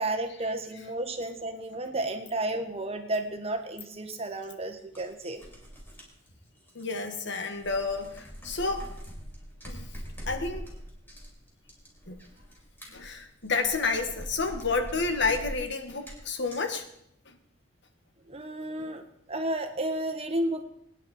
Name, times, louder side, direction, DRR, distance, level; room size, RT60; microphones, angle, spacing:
voice 1, 0.0-5.4 18.3-19.0 19.3-20.6, right 1 dB, 30° right, 6 dB, 1.5 m, -32 dB
sound 1, 3.8-3.9 4.8-7.2 7.5-16.7, equal, 10° left, 4.4 m, -43 dB
voice 2, 6.8-8.9 9.7-9.9 10.3-10.7 12.1-12.2 12.9-16.9 17.3-17.4 18.8-18.9, left 4 dB, 65° left, 6 dB, 1.7 m, -30 dB
22.5 x 10.0 x 4.4 m, 0.74 s
head